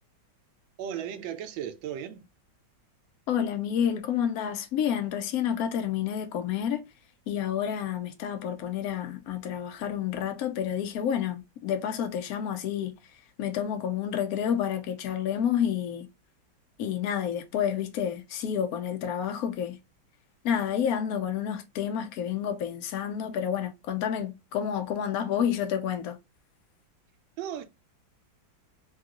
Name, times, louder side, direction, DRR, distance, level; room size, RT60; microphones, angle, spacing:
voice 1, 0.8-2.3 27.4-27.6, right 9 dB, 85° right, 1.3 m, -35 dB
voice 2, 3.3-6.8 7.3-12.9 13.4-16.1 16.8-19.8 20.4-26.2, left 9 dB, 70° left, 0.8 m, -29 dB
3.7 x 2.3 x 2.8 m
omnidirectional pair, 2.1 m